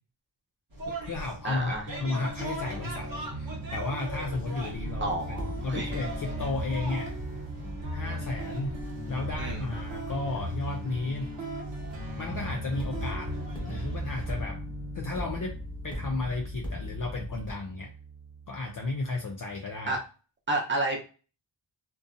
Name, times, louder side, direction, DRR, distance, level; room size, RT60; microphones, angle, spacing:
sound 1, 0.7-14.4, equal, 45° right, 1.0 m, -38 dB
voice 1, 0.9-7.2 7.9-8.7 9.1-11.3 12.2-13.3 13.6-14.6 14.9-15.5 15.8-17.9 18.5-20.0, left 3 dB, 45° left, 1 dB, 0.5 m, -33 dB
voice 2, 1.4-1.9 5.0-6.0 9.4-9.7 19.9-20.0 20.5-21.1, right 2 dB, 25° right, -1 dB, 0.8 m, -30 dB
sound 2, 1.9-19.8, right 3 dB, 75° right, 0.8 m, -41 dB
sound 3, 5.3-10.4 12.8-17.5, left 2 dB, 10° left, 1.0 m, -40 dB
2.6 x 2.2 x 2.5 m, 0.35 s
wide cardioid pair, 100°, 46 cm